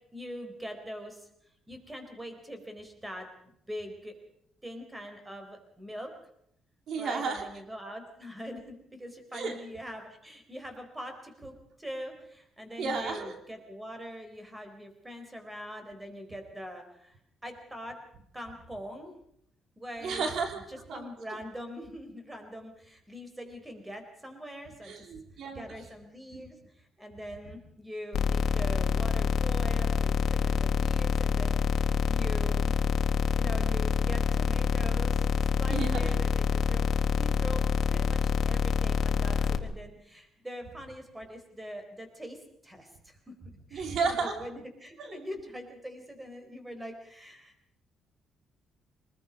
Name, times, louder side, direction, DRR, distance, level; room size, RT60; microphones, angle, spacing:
voice 1, 0.1-1.3 1.7-4.1 4.6-6.1 7.0-11.5 11.8-18.0 18.3-19.1 19.8-20.3 20.7-25.1 25.5-32.7 33.4-37.6 37.9-42.4 42.6-43.2 43.7-47.5, equal, 10° right, 6 dB, 4.3 m, -43 dB
voice 2, 6.9-7.5 9.3-9.6 12.8-13.3 20.0-20.6 20.9-21.1 24.8-25.6 26.3-26.5 35.7-36.2 43.7-44.3 45.0-45.2, right 4 dB, 65° right, 4 dB, 3.2 m, -32 dB
sound 1, 28.1-39.6, left 6 dB, 60° left, 1.6 m, -26 dB
25.5 x 20.0 x 5.3 m, 0.72 s
cardioid pair, 125°, 0 cm